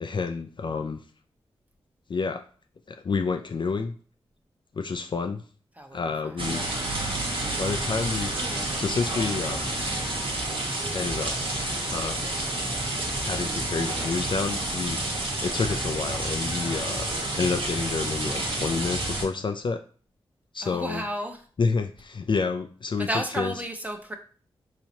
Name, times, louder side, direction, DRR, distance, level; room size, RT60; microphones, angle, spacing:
voice 1, 0.0-1.0 2.1-2.4 2.9-4.0 4.7-5.4 5.9-6.6 7.6-9.7 10.9-11.3 11.9-12.3 13.2-15.0 15.4-17.1 17.4-19.8 20.5-21.0 21.6-23.1 23.4-23.5, left 4 dB, 45° left, 6 dB, 0.4 m, -29 dB
voice 2, 5.8-6.3 15.2-15.4 20.6-21.4 23.0-24.2, right 1 dB, 15° right, 4 dB, 0.9 m, -33 dB
sound 1, 6.4-19.2, right 1 dB, 55° right, 1.3 m, -29 dB
4.1 x 2.8 x 2.8 m, 0.42 s
cardioid pair, 40°, 11 cm